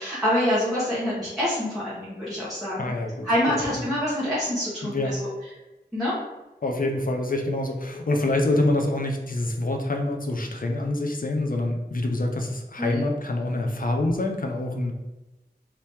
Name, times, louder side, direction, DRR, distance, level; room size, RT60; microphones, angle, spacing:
voice 1, 0.0-2.9 3.2-5.2 5.9-6.2 12.8-13.0, left 1 dB, ahead, -9 dB, 1.1 m, -26 dB
voice 2, 2.8-3.3 4.8-5.2 6.6-14.9, left 2 dB, 55° left, 3 dB, 0.6 m, -26 dB
2.9 x 2.8 x 3.4 m, 1.0 s
wide cardioid pair, 45°, 18 cm